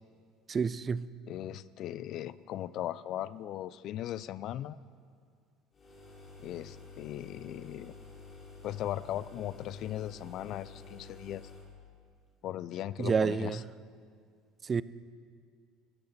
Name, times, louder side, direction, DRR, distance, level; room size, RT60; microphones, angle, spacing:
voice 1, 0.5-1.1 13.0-13.6 14.6-14.8, right 5 dB, 35° right, 0.5 m, -29 dB
voice 2, 1.3-4.8 6.4-7.9 8.6-11.5 12.4-13.6, left 12 dB, 55° left, 0.5 m, -38 dB
sound 1, 5.7-11.7, left 3 dB, 35° left, 3.8 m, -50 dB
16.5 x 15.5 x 4.2 m
hypercardioid pair, 65°, 0 cm